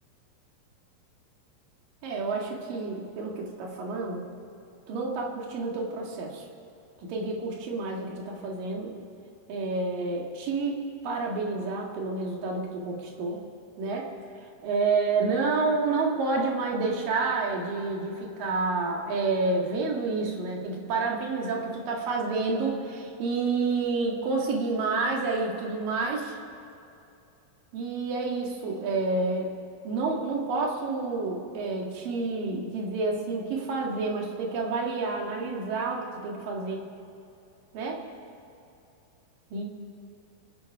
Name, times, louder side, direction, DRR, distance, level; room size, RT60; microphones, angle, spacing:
voice 1, 2.0-4.3 4.9-6.5 7.0-8.9 9.5-10.8 11.0-13.4 13.8-26.3 27.7-29.5 29.8-36.9 37.7-38.0 39.5-39.6, right 3 dB, 65° right, 0 dB, 3.4 m, -29 dB
26.5 x 10.5 x 4.8 m, 2.7 s
omnidirectional pair, 4.5 m